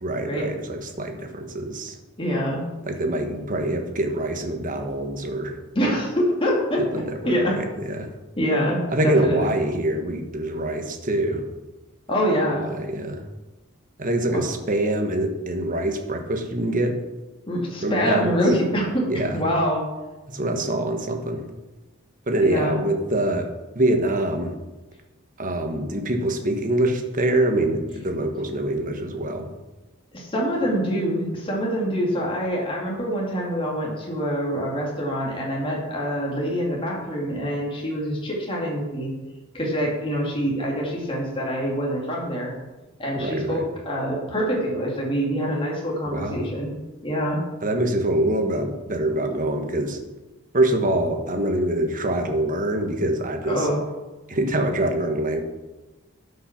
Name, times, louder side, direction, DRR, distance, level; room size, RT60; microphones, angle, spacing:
voice 1, 0.0-2.0 2.9-5.5 6.8-8.1 8.9-11.4 12.6-13.2 14.0-17.0 17.8-18.3 19.1-19.4 20.3-21.4 22.3-23.5 23.7-24.5 25.4-29.5 43.1-43.6 46.1-46.4 47.6-50.0 50.5-53.7 54.3-55.4, right 1 dB, 40° right, 4 dB, 1.3 m, -24 dB
voice 2, 2.2-2.6 5.7-7.6 8.4-9.5 12.1-12.7 14.3-14.5 17.5-19.1 19.3-19.8 22.4-22.8 30.1-39.1 39.5-42.5 43.0-46.7 47.0-47.4 53.5-53.8, equal, 25° left, -3 dB, 2.4 m, -25 dB
12.0 x 5.6 x 5.9 m, 1.1 s
head